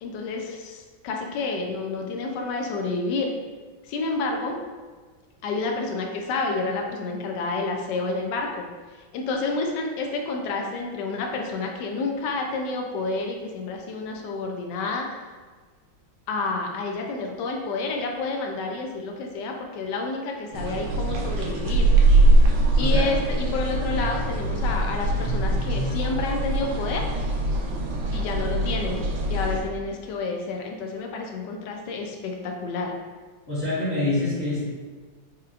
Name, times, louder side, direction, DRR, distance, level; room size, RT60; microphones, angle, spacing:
voice 1, 0.0-3.3 3.8-4.6 5.4-15.1 16.3-21.9 22.8-27.1 28.1-29.0 29.3-33.0, left 3 dB, 75° left, 2 dB, 1.0 m, -29 dB
sound 1, 20.5-29.6, right 2 dB, 85° right, 1.4 m, -22 dB
voice 2, 22.7-23.1 33.5-34.6, left 2 dB, 40° left, -14 dB, 1.4 m, -26 dB
4.8 x 2.9 x 2.4 m, 1.4 s
omnidirectional pair, 2.2 m